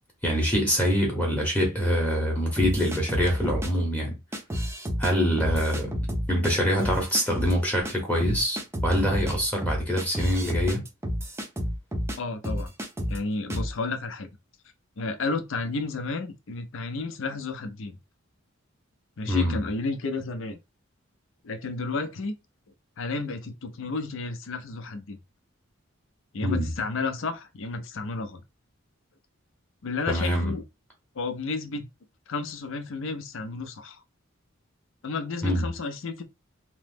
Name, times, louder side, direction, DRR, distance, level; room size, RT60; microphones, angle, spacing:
voice 1, 0.2-4.2 5.0-5.9 6.3-10.8 19.2-19.6 26.4-26.7 30.1-30.5 35.4-35.7, equal, 5° left, 0.8 m, -25 dB
sound 1, 2.6-3.7 4.3-5.1 5.4-6.5 6.8-7.5 7.9-8.0 8.2-12.2 12.4-13.2 13.5-13.7, equal, 15° right, 0.5 m, -30 dB
voice 2, 12.2-12.7 13.1-14.3 15.0-18.0 19.2-20.6 21.4-22.3 23.0-25.2 26.3-28.4 29.8-30.6 31.2-31.8 32.3-34.0 35.0-36.2, left 3 dB, 65° left, 0.5 m, -32 dB
2.9 x 2.0 x 3.4 m
head